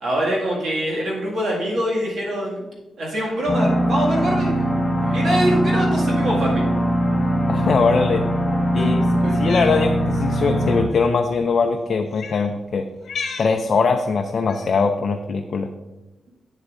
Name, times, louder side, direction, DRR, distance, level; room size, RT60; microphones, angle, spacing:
voice 1, 0.0-2.7 3.0-4.6 5.0-6.6 8.8-9.0 9.2-9.6, equal, 60° right, -4 dB, 1.9 m, -24 dB
sound 1, 3.5-10.8, equal, 15° left, 2.0 m, -21 dB
voice 2, 7.5-8.2 8.7-9.0 9.3-12.9 13.4-15.7, left 4 dB, 45° left, 5 dB, 0.4 m, -21 dB
Cat, 9.3-9.8 10.8-11.0 12.1-12.4 13.0-13.5 14.5-14.8, left 5 dB, 60° left, 1.1 m, -32 dB
8.3 x 8.0 x 2.5 m, 1.1 s
wide cardioid pair, 175°, 0 cm